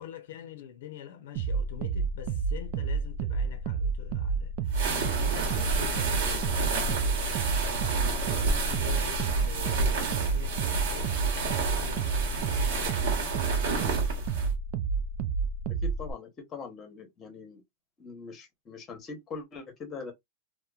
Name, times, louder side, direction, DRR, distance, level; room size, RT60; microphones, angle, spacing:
voice 1, 0.0-7.0 7.6-13.1, left 9 dB, 80° left, 0.6 m, -46 dB
sound 1, 1.4-16.1, right 5 dB, 45° right, 0.4 m, -30 dB
sound 2, 4.7-14.5, right 3 dB, 70° right, 1.0 m, -31 dB
voice 2, 15.7-17.6 18.0-20.1, left 4 dB, 20° left, 0.9 m, -42 dB
2.8 x 2.1 x 2.3 m
supercardioid pair, 155°, 0 cm